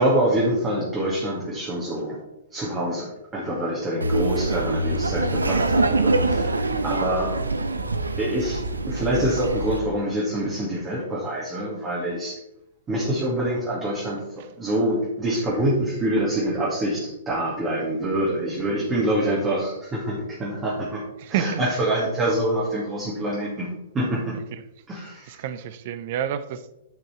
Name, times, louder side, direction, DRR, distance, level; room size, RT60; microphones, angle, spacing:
voice 1, 0.0-2.2 2.5-7.3 8.2-8.6 8.9-12.4 12.9-14.2 14.6-21.0 21.3-23.7 23.9-24.4 24.9-25.4, right 1 dB, 20° right, 2.2 m, -25 dB
Laughter, 4.0-9.8, right 2 dB, 80° right, 0.8 m, -24 dB
voice 2, 21.2-21.6 24.5-24.6 25.3-26.7, right 10 dB, 45° right, 0.7 m, -30 dB
10.5 x 5.4 x 4.4 m
figure-of-eight pair, 110°, 0 cm